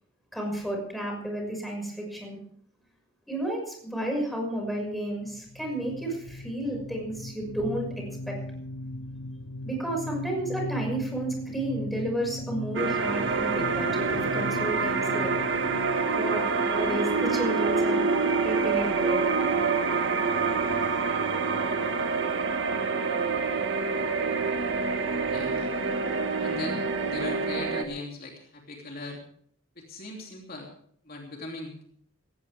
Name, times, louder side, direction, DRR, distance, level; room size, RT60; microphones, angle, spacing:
voice 1, 0.3-2.4 3.3-7.9 8.3-8.4 9.6-15.3 16.2-18.0 18.4-19.2, right 1 dB, ahead, 0 dB, 6.0 m, -32 dB
sound 1, 5.2-17.7, left 1 dB, 70° left, 0.8 m, -39 dB
sound 2, 12.7-27.8, right 4 dB, 65° right, 1.7 m, -26 dB
voice 2, 25.3-25.7 26.4-29.2 29.7-30.7 31.0-31.8, left 2 dB, 50° left, 0 dB, 3.1 m, -39 dB
18.0 x 17.5 x 3.6 m, 0.62 s
head